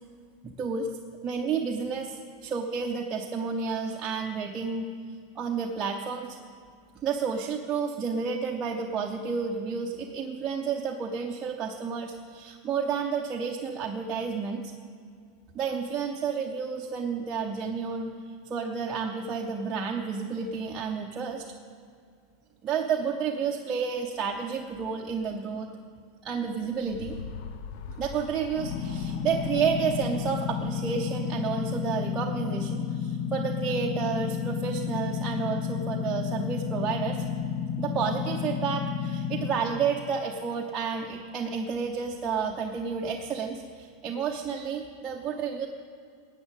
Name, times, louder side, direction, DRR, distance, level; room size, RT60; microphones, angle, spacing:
voice 1, 0.4-0.9 1.2-4.9 5.3-6.4 7.0-14.7 15.5-18.1 18.5-21.4 22.6-25.7 26.2-27.2 27.9-37.2 37.8-45.7, right 6 dB, 20° right, 0 dB, 0.8 m, -31 dB
sound 1, 26.4-32.0, left 6 dB, 60° left, 0.8 m, -43 dB
sound 2, 28.5-39.5, left 7 dB, 80° left, 4.0 m, -31 dB
13.5 x 8.2 x 9.0 m, 2.3 s
supercardioid pair, 155°, 0 cm